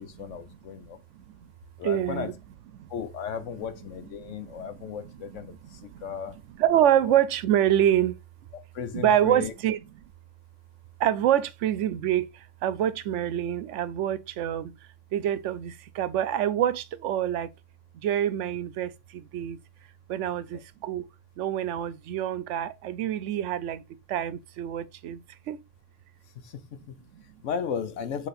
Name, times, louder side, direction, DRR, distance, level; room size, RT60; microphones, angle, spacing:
voice 1, 0.0-1.0 1.8-2.3 2.9-6.4 7.0-7.1 8.7-9.5 20.3-20.4 26.3-27.0 27.4-28.3, left 7 dB, 80° left, 1.2 m, -35 dB
voice 2, 1.1-1.5 1.8-2.3 2.7-2.9 4.2-4.9 5.7-6.0 6.6-8.2 8.9-9.8 11.0-14.8 15.1-17.5 18.0-19.6 20.1-21.1 21.4-25.6 27.1-27.2, right 11 dB, 75° right, 0.9 m, -26 dB
7.8 x 3.1 x 4.1 m
omnidirectional pair, 1.3 m